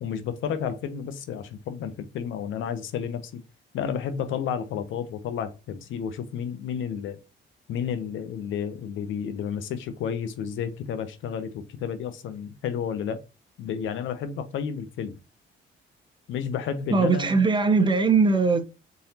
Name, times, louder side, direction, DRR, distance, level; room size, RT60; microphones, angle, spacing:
voice 1, 0.0-3.4 3.7-7.2 7.7-13.2 13.6-15.1 16.3-17.4, left 7 dB, 80° left, 0.6 m, -31 dB
voice 2, 16.9-18.6, right 4 dB, 25° right, 0.7 m, -20 dB
3.9 x 3.8 x 2.8 m
cardioid pair, 90°, 20 cm